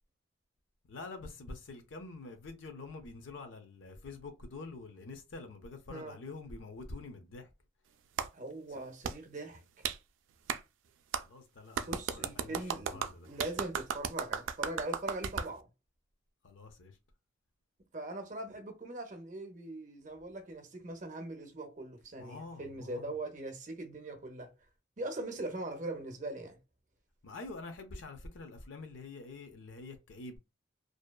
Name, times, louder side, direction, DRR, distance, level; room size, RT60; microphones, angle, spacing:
voice 1, 0.9-7.5 8.7-8.8 11.2-13.3 16.4-17.0 22.2-23.1 27.2-30.4, left 3 dB, 85° left, 0.5 m, -46 dB
Clapping, 8.2-8.3 9.0-9.2 9.8-10.0 10.5-10.6 11.1-11.2 11.7-15.5, right 7 dB, 85° right, 0.3 m, -35 dB
voice 2, 8.3-9.8 11.9-15.7 17.9-24.5 25.0-26.6, right 2 dB, 40° right, 0.6 m, -41 dB
2.7 x 2.1 x 2.2 m
head